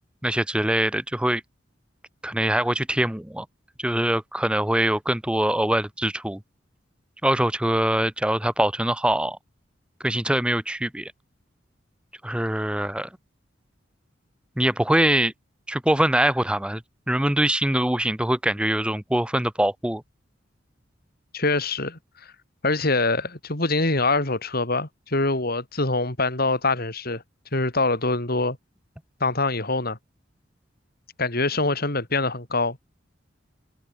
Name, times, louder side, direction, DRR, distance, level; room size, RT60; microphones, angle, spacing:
voice 1, 0.2-1.4 2.2-3.5 3.8-6.4 7.2-9.4 10.0-11.1 12.2-13.1 14.6-15.3 15.7-16.8 17.1-20.0, right 1 dB, 5° right, 0.7 m, -23 dB
voice 2, 21.3-22.0 22.6-27.2 27.5-28.6 29.2-30.0 31.2-32.8, left 3 dB, 50° left, 4.4 m, -24 dB
head